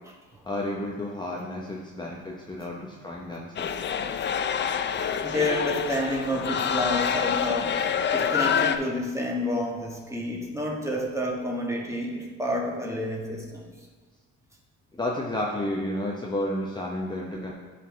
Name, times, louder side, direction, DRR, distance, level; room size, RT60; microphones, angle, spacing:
voice 1, 0.4-3.8 12.1-12.2 14.9-17.5, left 1 dB, 15° left, -3 dB, 0.8 m, -31 dB
sound 1, 3.6-8.8, left 7 dB, 40° left, 0.4 m, -27 dB
voice 2, 4.9-13.7, left 1 dB, 10° right, -1 dB, 1.4 m, -29 dB
11.0 x 4.2 x 3.2 m, 1.4 s
cardioid pair, 90°, 30 cm